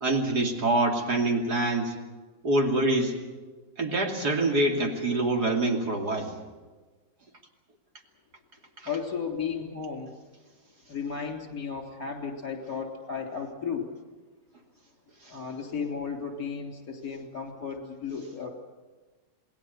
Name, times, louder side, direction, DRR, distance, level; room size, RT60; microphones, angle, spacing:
voice 1, 0.0-2.0 2.4-3.2 3.8-6.3 8.8-8.9, right 2 dB, 60° right, 1 dB, 3.3 m, -25 dB
voice 2, 8.9-10.1 10.9-13.9 15.3-18.5, left 6 dB, 50° left, 3 dB, 4.0 m, -34 dB
28.0 x 19.5 x 6.7 m, 1.3 s
omnidirectional pair, 2.0 m